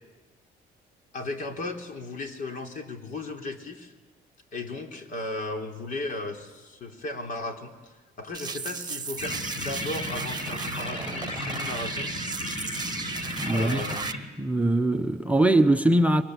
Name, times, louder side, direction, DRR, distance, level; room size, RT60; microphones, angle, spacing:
voice 1, 1.1-3.9 4.5-12.1 13.5-14.0, left 2 dB, 50° left, 3.8 m, -35 dB
sound 1, 8.3-14.1, right 6 dB, 25° right, 1.4 m, -36 dB
sound 2, 9.2-14.2, left 1 dB, 35° left, 5.3 m, -34 dB
voice 2, 13.4-13.8 14.4-16.2, right 1 dB, 10° right, 0.9 m, -22 dB
30.0 x 23.5 x 8.1 m
cardioid pair, 110°, 17 cm